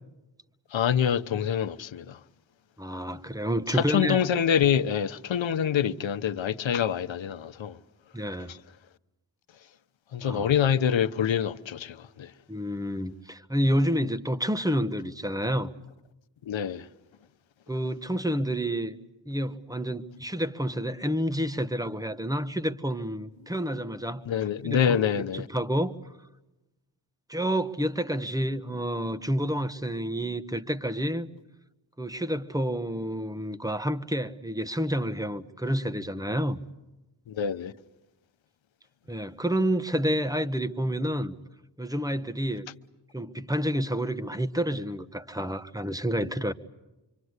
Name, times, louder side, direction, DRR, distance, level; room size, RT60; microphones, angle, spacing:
voice 1, 0.7-2.2 3.7-7.7 10.1-12.3 16.5-16.8 24.3-25.5 37.3-37.7, left 8 dB, 80° left, 1.0 m, -26 dB
voice 2, 2.8-4.2 8.1-8.5 10.2-10.5 12.5-15.7 17.7-18.9 19.2-26.0 27.3-31.3 32.0-36.6 39.1-41.3 41.8-42.7 43.1-46.5, equal, 10° right, 1.4 m, -29 dB
26.0 x 25.0 x 8.2 m
cardioid pair, 65°, 45 cm